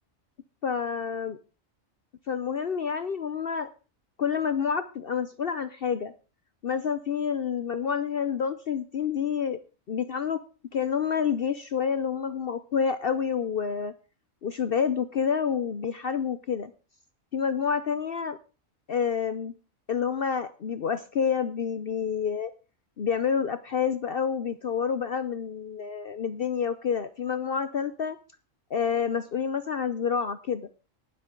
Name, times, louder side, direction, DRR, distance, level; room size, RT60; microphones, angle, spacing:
voice 1, 0.6-1.4 2.3-3.7 4.2-6.1 6.6-9.6 9.9-10.4 10.7-13.9 14.4-16.7 17.3-18.4 18.9-19.5 19.9-22.5 23.0-28.2 28.7-30.7, left 7 dB, 50° left, 12 dB, 0.8 m, -28 dB
19.0 x 7.7 x 3.8 m, 0.33 s
omnidirectional pair, 1.4 m